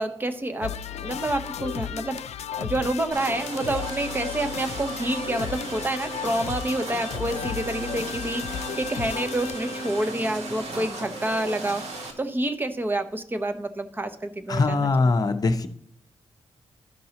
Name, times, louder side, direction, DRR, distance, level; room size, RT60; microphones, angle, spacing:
voice 1, 0.0-15.1, right 1 dB, 20° right, 8 dB, 0.6 m, -28 dB
sound 1, 0.6-10.1, left 9 dB, 80° left, 0.4 m, -35 dB
sound 2, 3.1-12.1, right 2 dB, 75° right, 1.5 m, -36 dB
voice 2, 14.5-15.7, left 3 dB, 35° left, 7 dB, 0.6 m, -22 dB
12.5 x 5.3 x 2.9 m, 0.72 s
wide cardioid pair, 135°, 11 cm